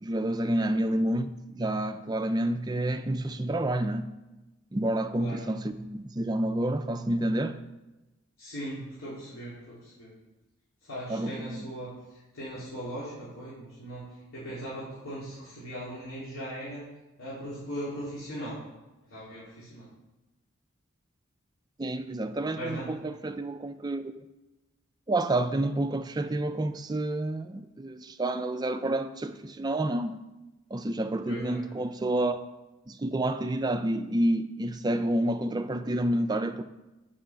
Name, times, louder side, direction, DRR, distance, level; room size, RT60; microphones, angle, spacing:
voice 1, 0.0-4.1 4.7-7.6 11.1-11.7 21.8-24.2 25.1-30.2 30.7-32.4 32.9-36.6, right 1 dB, 20° right, 0.3 m, -29 dB
voice 2, 8.4-10.1 10.8-16.8 17.2-18.6 19.1-19.9 22.5-22.9 31.3-31.6, equal, 75° left, 3.3 m, -39 dB
7.9 x 6.3 x 5.8 m
head